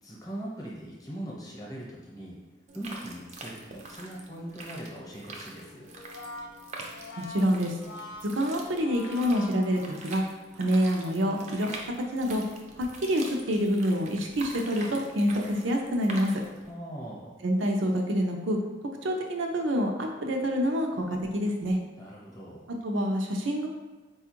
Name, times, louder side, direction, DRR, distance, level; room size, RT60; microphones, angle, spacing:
voice 1, 0.0-2.4 2.7-5.9 16.7-17.4 22.0-22.7, right 1 dB, 20° left, -4 dB, 0.8 m, -41 dB
sound 1, 2.7-16.7, right 2 dB, 35° right, 0.4 m, -44 dB
Brass instrument, 5.9-10.4, left 2 dB, 80° left, 0.5 m, -45 dB
voice 2, 7.2-7.7 8.3-10.2 10.6-11.7 12.0-12.4 12.8-16.4 17.4-18.6 19.0-21.8 22.8-23.7, equal, 90° right, 2 dB, 0.6 m, -27 dB
4.3 x 2.3 x 3.0 m, 1.2 s
head